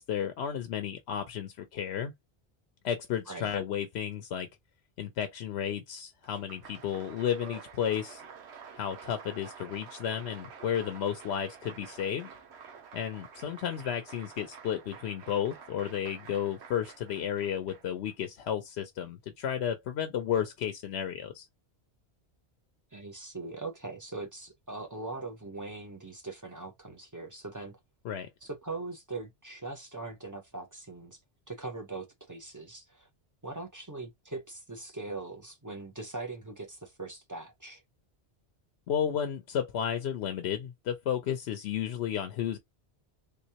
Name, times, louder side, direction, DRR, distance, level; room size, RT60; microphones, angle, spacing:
voice 1, 0.0-2.1 2.8-4.5 5.0-8.2 8.8-12.3 12.9-21.5 28.0-28.3 38.9-42.6, left 9 dB, 85° left, 0.9 m, -33 dB
Applause, 6.2-18.1, right 6 dB, 90° right, 1.1 m, -49 dB
voice 2, 22.9-27.8 28.4-31.2 31.5-33.1 33.4-37.8, right 3 dB, 20° right, 0.7 m, -41 dB
3.5 x 3.0 x 2.8 m
omnidirectional pair, 1.1 m